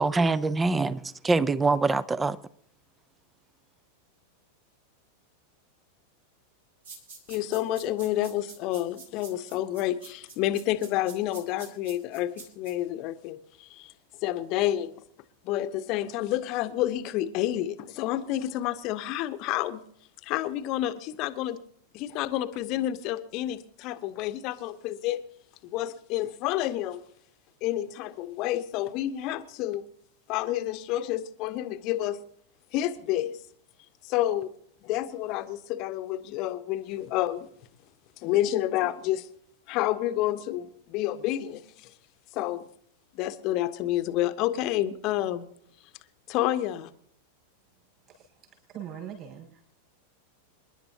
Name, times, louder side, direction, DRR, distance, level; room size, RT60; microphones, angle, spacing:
voice 1, 0.0-2.4, right 3 dB, 15° right, 0.5 m, -24 dB
sound 1, 6.8-12.7, right 4 dB, 65° right, 3.6 m, -47 dB
voice 2, 7.3-13.9 14.2-15.0 15.4-19.8 20.2-21.6 21.9-25.2 25.6-27.0 27.6-29.8 30.3-32.2 32.7-33.3 34.0-34.5 34.8-37.5 38.2-39.3 39.7-41.9 42.3-42.7 43.1-45.5 46.3-46.9, left 13 dB, 40° left, 0.9 m, -29 dB
voice 3, 48.1-49.6, right 9 dB, 35° right, 6.2 m, -42 dB
27.5 x 11.0 x 2.8 m
figure-of-eight pair, 90°, 0 cm